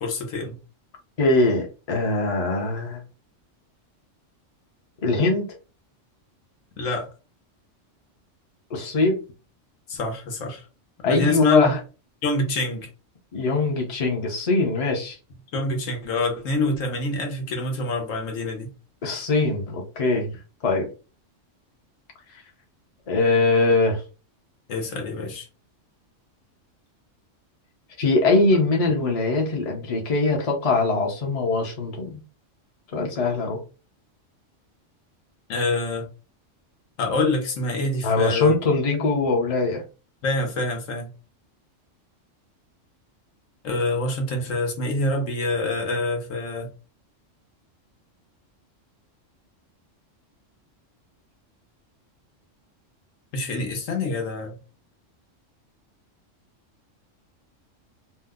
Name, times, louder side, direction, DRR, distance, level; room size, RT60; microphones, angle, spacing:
voice 1, 0.0-0.6 6.8-7.1 9.9-10.6 11.0-11.7 12.2-12.9 15.5-18.7 24.7-25.5 35.5-36.1 37.0-38.5 40.2-41.1 43.6-46.7 53.3-54.6, left 2 dB, 85° left, 1.2 m, -26 dB
voice 2, 1.2-3.0 5.0-5.5 8.7-9.2 11.0-11.8 13.3-15.2 19.0-20.3 20.6-20.9 23.1-24.0 28.0-32.2 32.9-33.6 38.0-39.8, left 3 dB, 35° left, 0.6 m, -22 dB
2.7 x 2.1 x 3.5 m
omnidirectional pair, 1.3 m